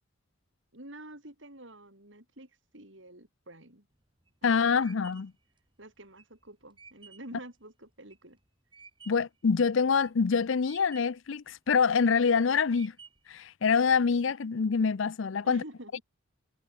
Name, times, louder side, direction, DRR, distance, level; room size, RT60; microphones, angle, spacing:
voice 1, 0.7-3.9 4.4-5.1 5.8-8.4 15.4-16.0, right 1 dB, 60° right, 5.3 m, -49 dB
sound 1, 3.9-9.4 9.8-10.4 10.6-11.3 11.8-12.3 12.7-13.4, right 5 dB, 25° right, 4.9 m, -54 dB
voice 2, 4.4-5.3 9.1-12.9 13.3-15.6, left 5 dB, 65° left, 0.5 m, -25 dB
head